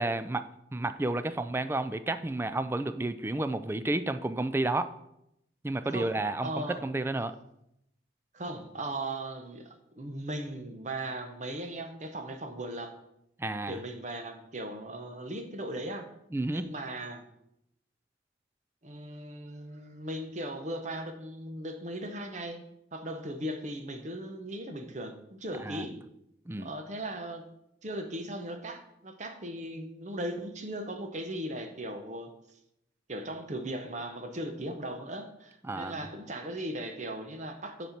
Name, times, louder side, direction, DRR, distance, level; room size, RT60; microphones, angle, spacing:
voice 1, 0.0-4.9 5.6-7.3 13.4-13.8 16.3-16.7 25.6-25.9 26.5-26.7 35.6-36.0, right 2 dB, 10° right, 11 dB, 0.3 m, -31 dB
voice 2, 6.4-6.8 8.3-12.9 13.7-16.1 16.5-17.2 18.8-22.6 22.9-26.0 26.6-27.5 27.8-32.3 33.1-37.9, right 1 dB, 40° right, 6 dB, 0.8 m, -38 dB
8.3 x 4.2 x 5.9 m, 0.80 s
head